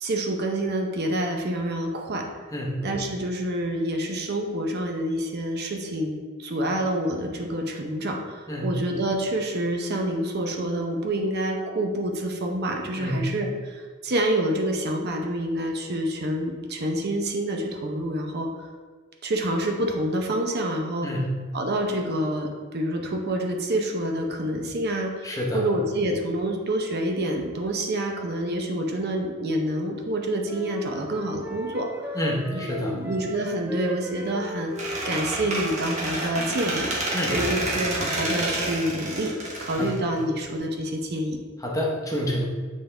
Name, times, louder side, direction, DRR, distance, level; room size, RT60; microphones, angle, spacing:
voice 1, 0.0-2.2 2.8-18.5 19.2-21.1 21.5-32.2 32.5-34.7 35.0-39.3 39.6-41.4, right 1 dB, 50° right, 2 dB, 0.7 m, -27 dB
voice 2, 2.5-2.8 8.5-8.7 13.0-13.3 21.0-21.3 25.2-25.6 32.2-33.0 37.1-37.4 39.8-39.9 41.6-42.4, equal, 15° left, -2 dB, 0.8 m, -28 dB
sound 1, 30.4-35.6, right 1 dB, 10° right, 0.3 m, -37 dB
Squeak, 34.8-40.6, right 2 dB, 35° right, 1.3 m, -29 dB
7.5 x 3.7 x 3.4 m, 1.5 s
head